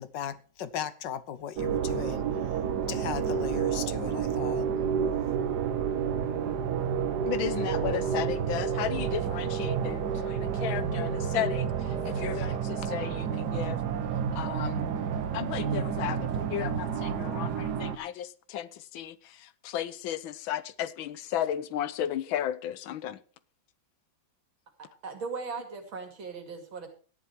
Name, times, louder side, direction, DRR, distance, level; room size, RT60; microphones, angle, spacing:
voice 1, 0.0-2.2 2.5-2.6 2.9-4.6, left 9 dB, 70° left, 1.5 m, -37 dB
sound 1, 1.6-18.0, right 7 dB, 60° right, 1.5 m, -30 dB
voice 2, 7.2-13.8 14.3-14.9 15.3-23.2, left 11 dB, 85° left, 1.6 m, -34 dB
sound 2, 8.3-17.1, left 3 dB, 5° right, 6.3 m, -56 dB
voice 3, 25.0-26.9, right 4 dB, 80° right, 3.3 m, -38 dB
13.0 x 10.5 x 4.7 m
omnidirectional pair, 2.1 m